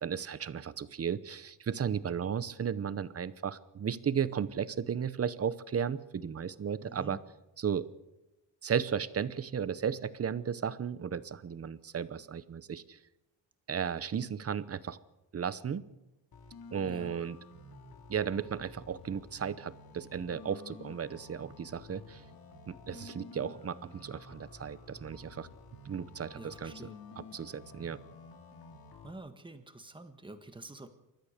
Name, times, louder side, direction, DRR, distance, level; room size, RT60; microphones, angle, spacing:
voice 1, 0.0-7.2 7.6-7.9 8.6-13.0 13.7-15.0 15.3-15.9 16.7-17.4 18.1-22.2 22.7-25.5 25.8-26.7 27.2-28.0, right 7 dB, 35° right, 15 dB, 0.8 m, -35 dB
voice 2, 6.8-7.2 16.8-17.1 26.4-27.0 29.0-30.9, right 2 dB, 10° right, 8 dB, 1.5 m, -47 dB
sound 1, 16.3-29.1, left 3 dB, 55° left, 2.6 m, -51 dB
29.0 x 13.5 x 6.6 m, 0.97 s
wide cardioid pair, 160°, 43 cm